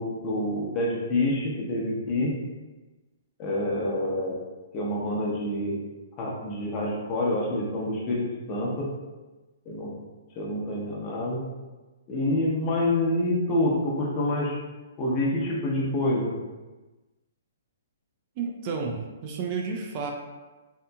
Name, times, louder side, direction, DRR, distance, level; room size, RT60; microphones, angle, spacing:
voice 1, 0.0-2.3 3.4-4.4 4.7-5.8 6.2-8.9 9.7-9.9 10.4-11.4 12.1-14.6 15.0-16.3, left 1 dB, 30° left, -4 dB, 0.7 m, -27 dB
voice 2, 18.4-20.1, right 5 dB, 40° right, 1 dB, 0.3 m, -31 dB
2.8 x 2.4 x 2.3 m, 1.2 s
hypercardioid pair, 130°, 0 cm